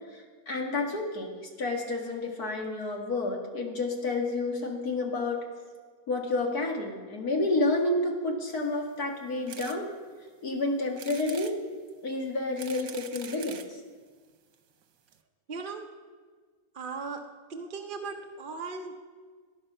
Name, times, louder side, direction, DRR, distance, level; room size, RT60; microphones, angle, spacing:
voice 1, 0.1-5.4 6.1-9.9 10.4-11.5 12.0-13.8, left 2 dB, 55° left, 1 dB, 2.4 m, -30 dB
sound 1, 9.5-9.8 10.3-10.4 11.0-11.6 12.3-13.7 14.5-14.6 14.8-14.9 15.1-15.2, right 8 dB, 80° right, 1.6 m, -44 dB
voice 2, 15.5-15.9 16.7-17.2 17.5-18.9, right 4 dB, 40° right, 2 dB, 0.8 m, -37 dB
19.0 x 11.0 x 5.5 m, 1.5 s
omnidirectional pair, 1.9 m